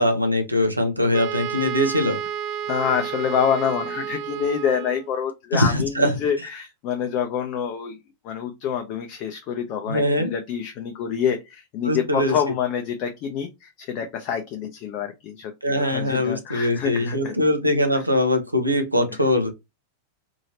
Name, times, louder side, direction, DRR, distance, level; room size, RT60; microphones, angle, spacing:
voice 1, 0.0-2.2 5.5-6.2 9.9-10.3 11.8-12.3 15.6-19.5, left 1 dB, 85° right, 0.7 m, -22 dB
Wind instrument woodwind instrument, 1.1-5.2, right 9 dB, 40° right, 0.4 m, -31 dB
voice 2, 2.7-8.0 8.2-17.4, left 8 dB, 40° left, 0.5 m, -27 dB
2.8 x 2.8 x 2.6 m
figure-of-eight pair, 90°, 0 cm